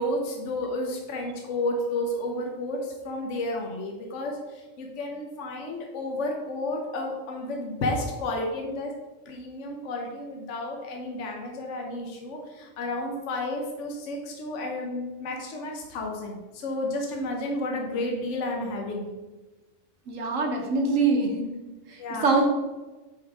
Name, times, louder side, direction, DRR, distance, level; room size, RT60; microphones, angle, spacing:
voice 1, 0.0-8.9 9.3-19.1 22.0-22.3, left 1 dB, 65° left, 1 dB, 1.1 m, -31 dB
voice 2, 20.1-21.4 21.9-22.4, right 3 dB, 75° right, 2 dB, 1.4 m, -24 dB
6.2 x 4.9 x 3.5 m, 1.2 s
omnidirectional pair, 1.4 m